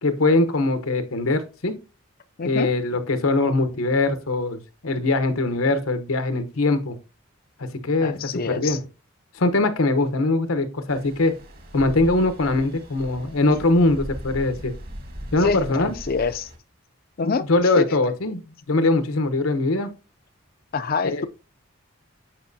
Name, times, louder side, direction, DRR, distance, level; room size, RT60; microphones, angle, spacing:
voice 1, 0.0-1.7 2.4-7.0 7.6-8.8 9.3-11.3 11.7-14.7 15.3-15.9 17.2-18.4 18.7-19.9 21.0-21.3, left 2 dB, 85° left, 1.0 m, -22 dB
voice 2, 2.4-2.7 8.0-8.8 15.4-16.5 17.2-17.5 17.8-17.9 20.7-21.3, left 4 dB, 45° left, 0.4 m, -25 dB
Stream, 10.9-16.6, equal, 45° right, 1.5 m, -39 dB
8.7 x 5.3 x 2.7 m
head